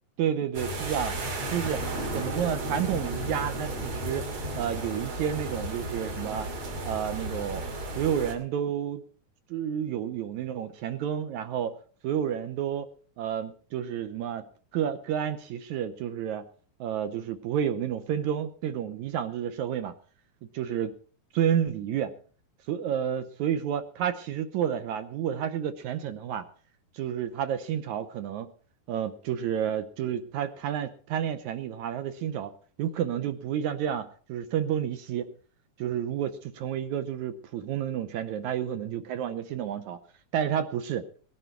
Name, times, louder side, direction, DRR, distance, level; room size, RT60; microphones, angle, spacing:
voice 1, 0.2-1.2 1.5-1.8 2.1-4.3 4.5-6.5 6.8-7.6 8.0-9.0 9.5-11.8 12.0-12.9 13.2-14.5 14.7-16.5 16.8-19.9 20.5-21.0 21.3-22.1 22.7-26.5 26.9-28.5 28.9-32.5 32.8-35.3 35.8-40.0 40.3-41.1, right 9 dB, 75° right, 10 dB, 1.8 m, -30 dB
sound 1, 0.5-8.3, right 1 dB, 45° right, 3.4 m, -33 dB
19.5 x 11.0 x 4.5 m, 0.42 s
omnidirectional pair, 4.3 m